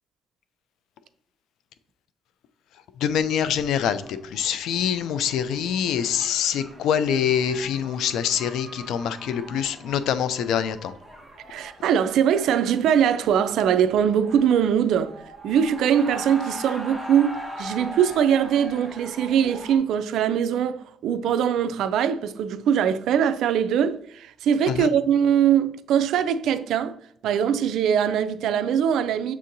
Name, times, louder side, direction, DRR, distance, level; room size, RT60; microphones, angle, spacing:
voice 1, 3.0-10.9 24.7-24.9, left 8 dB, 80° left, 0.4 m, -25 dB
sound 1, 3.2-19.8, equal, 5° right, 1.3 m, -42 dB
voice 2, 11.5-15.1 15.4-26.9 27.2-29.3, right 8 dB, 80° right, 0.3 m, -22 dB
7.0 x 2.8 x 2.6 m
cardioid pair, 90°, 0 cm